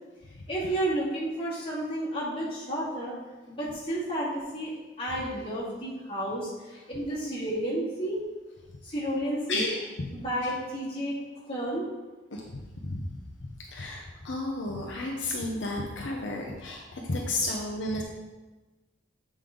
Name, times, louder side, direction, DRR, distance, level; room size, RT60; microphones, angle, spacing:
voice 1, 0.5-3.1 3.5-4.7 5.0-8.2 8.8-9.7 10.1-11.1 11.5-11.9, right 1 dB, 30° left, -8 dB, 2.3 m, -31 dB
voice 2, 9.5-10.1 12.3-13.1 13.7-18.0, left 2 dB, 70° left, -1 dB, 0.8 m, -32 dB
7.7 x 5.2 x 3.8 m, 1.2 s
head